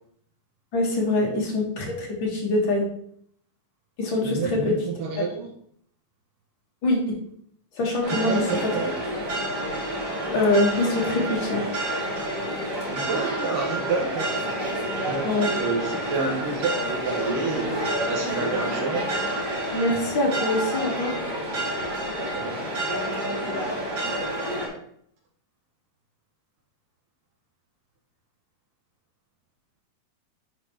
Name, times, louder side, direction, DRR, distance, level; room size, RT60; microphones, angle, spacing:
voice 1, 0.7-2.8 4.0-4.8 5.1-5.3 6.8-7.2 7.8-8.4 10.3-11.6 15.2-15.5 19.7-21.2, left 2 dB, 45° left, -2 dB, 1.8 m, -24 dB
voice 2, 4.2-5.5 8.1-8.9 9.8-10.0 12.9-14.4 15.0-19.1 22.3-22.5, right 4 dB, 75° right, -1 dB, 2.8 m, -29 dB
sound 1, 8.0-24.7, right 1 dB, 30° right, 2.7 m, -29 dB
11.0 x 4.2 x 3.0 m, 0.67 s
omnidirectional pair, 3.9 m